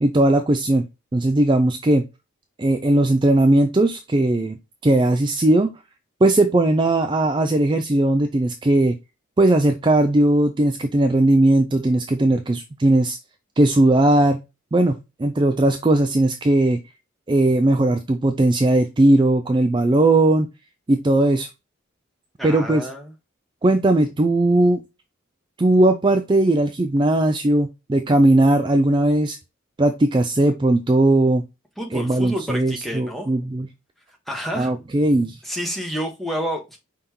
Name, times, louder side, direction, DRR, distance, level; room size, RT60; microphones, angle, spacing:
voice 1, 0.0-0.9 1.1-2.1 2.6-4.6 4.8-5.7 6.2-9.0 9.4-13.2 13.6-14.4 14.7-16.8 17.3-20.5 20.9-21.5 22.4-22.9 23.6-24.8 25.6-29.4 29.8-31.4 31.9-33.7 34.5-35.4, right 1 dB, 25° right, 0.4 m, -18 dB
voice 2, 22.4-23.1 31.8-33.3 34.3-34.7 35.4-36.8, equal, ahead, 1.1 m, -29 dB
5.4 x 3.5 x 2.8 m
head